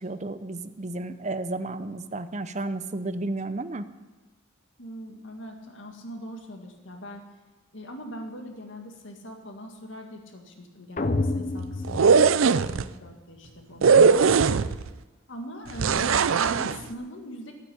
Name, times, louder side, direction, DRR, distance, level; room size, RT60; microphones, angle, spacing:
voice 1, 0.0-3.9, right 2 dB, 35° right, 11 dB, 0.7 m, -32 dB
voice 2, 4.8-7.2 7.7-13.9 15.3-17.5, equal, 65° left, 3 dB, 2.1 m, -41 dB
sound 1, 11.0-13.1, left 2 dB, 40° left, 0.7 m, -30 dB
sound 2, 11.8-12.8 13.8-14.9 15.8-16.8, right 5 dB, 85° right, 0.5 m, -19 dB
13.0 x 9.0 x 8.7 m, 1.2 s
head